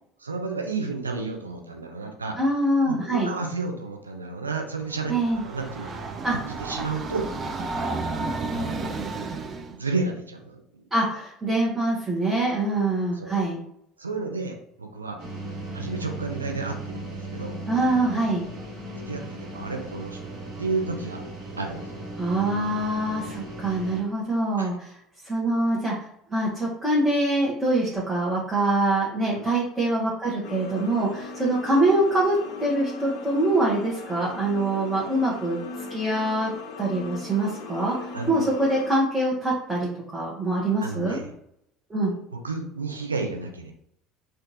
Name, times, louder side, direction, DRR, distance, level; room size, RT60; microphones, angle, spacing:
voice 1, 0.2-2.3 2.8-6.1 6.4-7.3 8.5-8.7 9.7-10.6 13.1-13.3 14.0-15.2 15.7-17.6 19.1-19.2 19.5-21.2 21.6-21.9 24.6-24.7 29.3-29.5 38.1-38.3 40.8-41.3 42.3-43.7, right 3 dB, 85° right, 3 dB, 0.5 m, -31 dB
voice 2, 2.4-3.3 5.1-5.4 6.2-6.4 10.9-13.6 17.7-18.4 22.2-25.0 25.2-25.9 26.3-35.6 35.9-36.5 36.8-41.2 41.9-42.1, right 1 dB, 15° right, -6 dB, 1.2 m, -24 dB
Train, 4.9-9.8, right 3 dB, 35° right, 0.5 m, -32 dB
sound 1, 15.2-24.0, right 1 dB, 55° right, 1.3 m, -37 dB
sound 2, 30.4-39.0, left 4 dB, 60° left, 0.5 m, -39 dB
4.3 x 2.5 x 2.7 m, 0.72 s
figure-of-eight pair, 65°, 0 cm